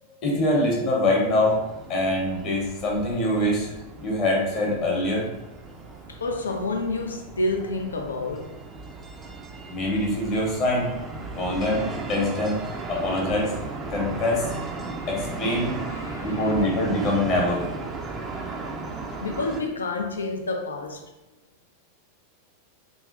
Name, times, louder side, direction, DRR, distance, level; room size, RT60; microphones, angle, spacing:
voice 1, 0.2-1.6 1.9-3.7 4.0-5.3 9.7-10.9 11.3-13.5 13.9-14.5 15.1-15.7 16.2-17.6, left 1 dB, 40° left, 0.9 m, -24 dB
sound 1, 1.1-19.6, right 3 dB, 25° right, 0.4 m, -36 dB
voice 2, 6.1-8.6 15.6-16.7 19.2-21.0, left 2 dB, 70° left, 0.4 m, -29 dB
2.9 x 2.5 x 2.5 m
figure-of-eight pair, 90°, 0 cm